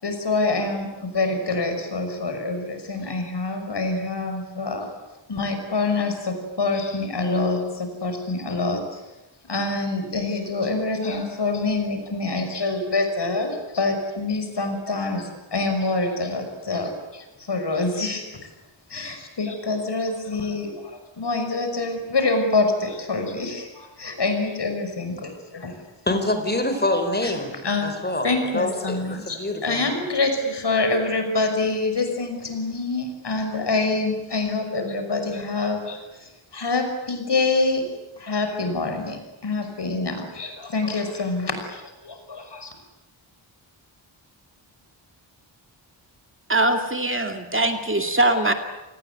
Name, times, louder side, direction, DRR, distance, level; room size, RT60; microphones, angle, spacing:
voice 1, 0.0-4.9 5.3-9.0 9.5-18.2 18.9-20.7 21.2-25.7 27.2-27.9 28.2-37.8 38.2-42.7, left 3 dB, 60° left, 6 dB, 5.9 m, -26 dB
voice 2, 26.1-27.6 27.8-29.9, left 1 dB, 20° left, 7 dB, 5.0 m, -26 dB
voice 3, 46.5-48.5, right 2 dB, 25° right, 6 dB, 2.3 m, -21 dB
29.0 x 19.5 x 9.5 m, 1.0 s
wide cardioid pair, 110°, 47 cm